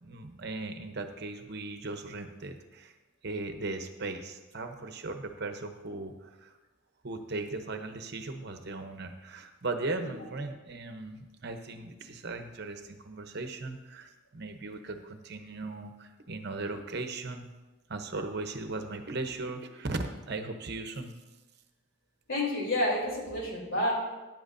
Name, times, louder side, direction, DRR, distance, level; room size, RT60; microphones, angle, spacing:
voice 1, 0.0-2.9 3.2-6.6 7.0-17.5 17.9-21.1, right 2 dB, 55° right, 7 dB, 0.8 m, -38 dB
voice 2, 22.3-23.9, left 1 dB, 65° left, -3 dB, 3.3 m, -29 dB
13.5 x 10.5 x 2.6 m, 1.1 s
head